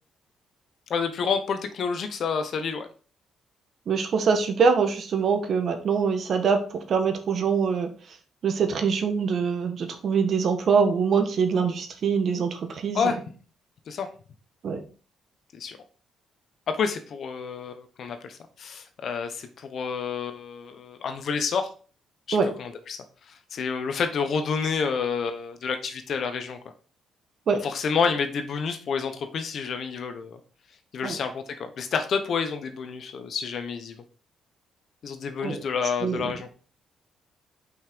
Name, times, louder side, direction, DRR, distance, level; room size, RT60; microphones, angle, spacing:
voice 1, 0.9-2.9 12.9-13.2 13.9-14.1 15.5-15.8 16.7-21.7 22.3-23.0 23.3-26.6 27.6-30.4 30.9-34.0 35.0-36.5, left 6 dB, 60° left, 8 dB, 1.2 m, -29 dB
voice 2, 3.9-7.9 8.4-13.2 14.6-14.8 22.3-22.5 27.5-27.6 31.0-31.2 35.4-35.6 36.0-36.3, right 5 dB, 55° right, 6 dB, 1.5 m, -24 dB
5.7 x 5.7 x 4.7 m, 0.39 s
cardioid pair, 90°, 0 cm